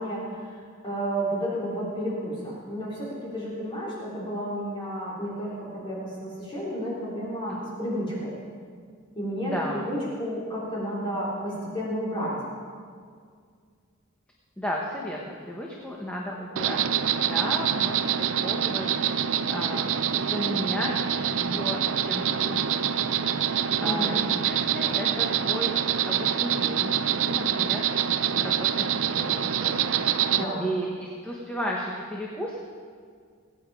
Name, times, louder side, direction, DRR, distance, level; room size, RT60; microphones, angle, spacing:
voice 1, 0.0-8.3 9.1-12.4 23.8-24.2 30.3-30.7, equal, 25° left, -6 dB, 3.5 m, -31 dB
voice 2, 9.4-9.8 14.6-16.8 17.1-18.1 18.4-18.9 19.1-20.9 21.3-22.9 23.8-25.8 26.1-27.0 27.2-27.9 28.3-29.9 30.3-32.6, equal, 5° left, -3 dB, 1.3 m, -34 dB
Insect, 16.6-30.4, right 9 dB, 70° right, 0.5 m, -26 dB
21.0 x 9.0 x 4.8 m, 2.1 s
head